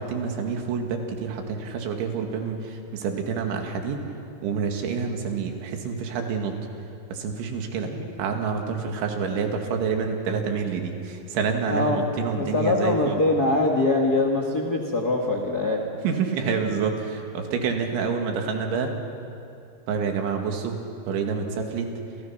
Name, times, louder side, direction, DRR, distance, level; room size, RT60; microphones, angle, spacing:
voice 1, 0.0-4.0 4.4-6.5 7.1-7.9 8.2-13.2 16.0-18.9 19.9-21.9, right 5 dB, 85° right, 3 dB, 4.6 m, -28 dB
voice 2, 7.8-8.2 11.7-15.8, left 2 dB, 55° left, 1 dB, 1.0 m, -23 dB
29.5 x 28.5 x 5.9 m, 2.6 s
omnidirectional pair, 5.2 m